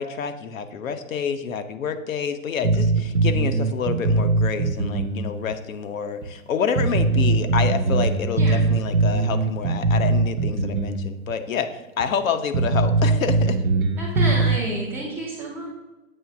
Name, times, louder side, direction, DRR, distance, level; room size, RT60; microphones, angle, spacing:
voice 1, 0.0-13.6, left 6 dB, 70° left, 9 dB, 0.8 m, -28 dB
sound 1, 2.6-5.2 5.5-5.6 6.2-6.3 6.8-11.0 11.3-11.4 12.0-12.1 12.5-14.6, right 3 dB, 85° right, 0.9 m, -21 dB
voice 2, 14.0-15.7, right 1 dB, 5° right, -6 dB, 0.5 m, -30 dB
7.7 x 3.2 x 5.9 m, 1.1 s
hypercardioid pair, 150°, 42 cm